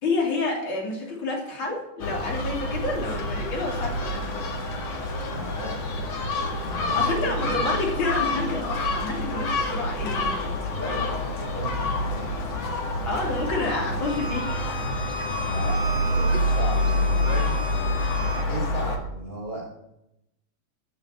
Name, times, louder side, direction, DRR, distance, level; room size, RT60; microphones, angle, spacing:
voice 1, 0.0-4.5 6.9-10.6 13.0-14.8, left 3 dB, 40° left, -2 dB, 3.9 m, -29 dB
Gull seagull, 2.0-19.0, left 1 dB, 85° left, 3.5 m, -27 dB
voice 2, 5.3-7.5 10.7-12.3 15.5-17.6 18.5-19.7, right 1 dB, 15° right, -6 dB, 5.5 m, -35 dB
Bowed string instrument, 14.0-18.5, equal, 10° left, 2.3 m, -35 dB
14.0 x 7.3 x 8.8 m, 0.86 s
omnidirectional pair, 3.4 m